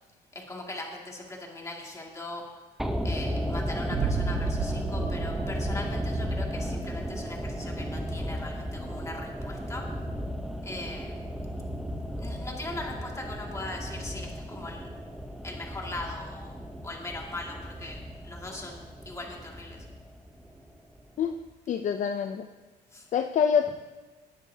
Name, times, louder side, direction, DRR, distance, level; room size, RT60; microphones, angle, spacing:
voice 1, 0.3-2.5 3.0-9.9 10.6-11.5 12.2-14.9 15.4-16.6 16.8-19.9 22.9-23.1, left 2 dB, 15° left, -1 dB, 2.3 m, -40 dB
sound 1, 2.8-21.0 21.2-21.3, equal, ahead, 0.8 m, -34 dB
sound 2, 3.9-6.9, right 7 dB, 55° right, 0.9 m, -33 dB
voice 2, 21.7-22.5 23.1-23.7, left 7 dB, 45° left, 7 dB, 0.5 m, -25 dB
18.0 x 9.6 x 2.8 m, 1.3 s
cardioid pair, 110°, 17 cm